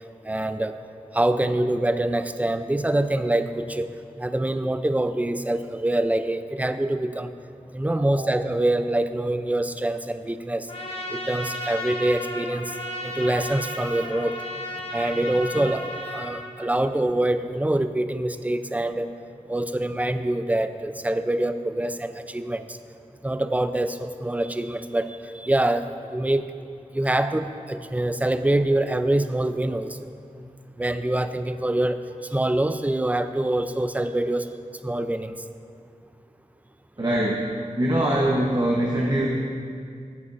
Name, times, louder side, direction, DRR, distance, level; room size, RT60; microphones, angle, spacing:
voice 1, 0.2-0.8 1.1-3.9 4.2-7.3 7.7-10.7 11.1-12.8 13.0-14.4 14.9-19.1 19.5-22.8 23.2-26.4 26.9-30.0 30.8-34.5 34.8-35.3, right 1 dB, 10° right, 10 dB, 0.4 m, -25 dB
Trumpet, 10.7-16.5, left 1 dB, 45° left, 1.3 m, -34 dB
voice 2, 37.0-37.4 37.8-39.3, right 1 dB, 30° right, -2 dB, 0.9 m, -23 dB
14.0 x 8.4 x 2.5 m, 2.3 s
wide cardioid pair, 60°, 14 cm